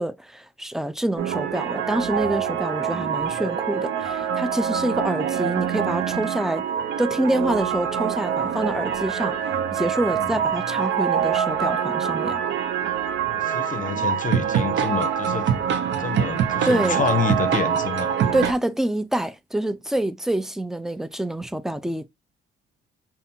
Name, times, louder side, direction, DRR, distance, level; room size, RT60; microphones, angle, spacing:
voice 1, 0.0-6.6 7.0-9.4 9.7-12.4 16.6-17.0 18.3-22.1, right 1 dB, ahead, 0.4 m, -26 dB
sound 1, 1.2-18.5, right 8 dB, 65° right, 0.6 m, -25 dB
voice 2, 13.2-15.5 16.0-18.1, left 6 dB, 40° left, 0.7 m, -28 dB
5.3 x 2.4 x 2.6 m
cardioid pair, 90°, 20 cm